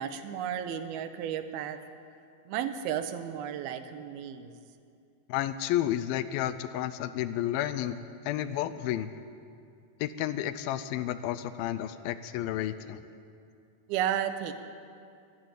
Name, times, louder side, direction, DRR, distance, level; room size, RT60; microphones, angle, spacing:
voice 1, 0.0-1.8 2.5-4.5 13.9-14.5, right 9 dB, 80° right, 10 dB, 2.6 m, -33 dB
voice 2, 5.3-8.0 8.2-9.1 10.0-13.0, left 12 dB, 80° left, 13 dB, 2.2 m, -31 dB
13.0 x 12.0 x 9.1 m, 2.4 s
omnidirectional pair, 4.5 m